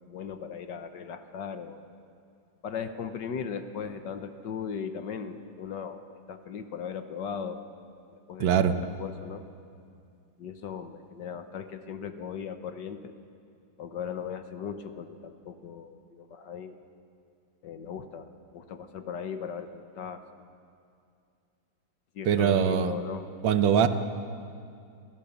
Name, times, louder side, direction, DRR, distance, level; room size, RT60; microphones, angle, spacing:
voice 1, 0.1-1.8 2.6-7.6 8.1-9.4 10.4-13.1 13.8-16.8 17.6-20.2 22.1-23.3, left 7 dB, 65° left, 8 dB, 1.6 m, -38 dB
voice 2, 8.4-8.8 22.2-22.9 23.4-23.9, right 8 dB, 80° right, 10 dB, 1.7 m, -22 dB
27.5 x 15.5 x 7.2 m, 2.4 s
omnidirectional pair, 2.1 m